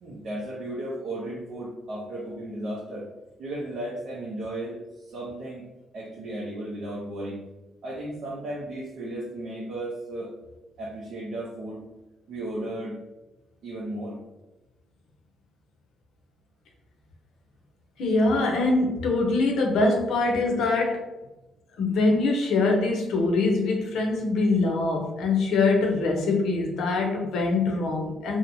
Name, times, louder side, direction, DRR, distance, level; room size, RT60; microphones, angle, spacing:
voice 1, 0.0-3.1 3.4-5.7 5.9-7.4 7.8-10.3 10.8-11.9 12.3-13.0 13.6-14.2, right 1 dB, 65° right, -3 dB, 0.5 m, -35 dB
voice 2, 18.0-21.0 21.8-28.4, left 3 dB, 80° left, 1 dB, 0.6 m, -23 dB
2.5 x 2.0 x 2.9 m, 1.1 s
cardioid pair, 90°, 0 cm